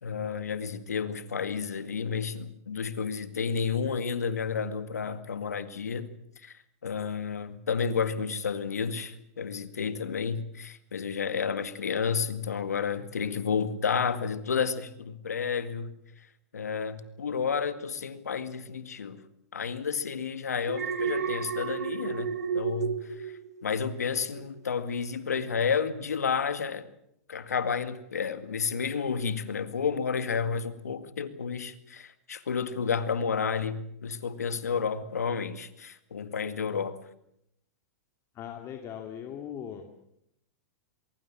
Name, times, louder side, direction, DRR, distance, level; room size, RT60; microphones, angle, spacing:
voice 1, 0.0-16.3 16.5-19.2 19.5-26.9 27.3-37.0, left 6 dB, 90° left, 11 dB, 2.1 m, -31 dB
Alarm, 20.7-24.0 24.4-24.7, right 6 dB, 90° right, 1.6 m, -32 dB
voice 2, 38.3-39.8, left 9 dB, 35° left, 4 dB, 2.6 m, -39 dB
23.0 x 23.0 x 7.5 m, 0.77 s
hypercardioid pair, 115°, 8 cm